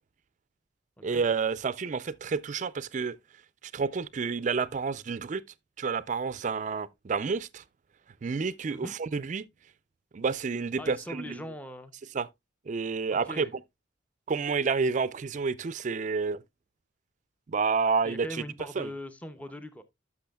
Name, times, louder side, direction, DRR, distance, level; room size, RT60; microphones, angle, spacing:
voice 1, 1.0-3.2 3.7-5.4 5.8-7.6 8.2-9.5 10.1-11.4 12.1-12.3 12.7-13.5 14.3-16.4 17.5-18.4 18.8-18.9, right 5 dB, 40° right, 0.4 m, -29 dB
voice 2, 10.8-11.9 13.1-13.5 18.0-19.8, left 1 dB, 5° left, 0.6 m, -41 dB
11.5 x 6.2 x 2.2 m
head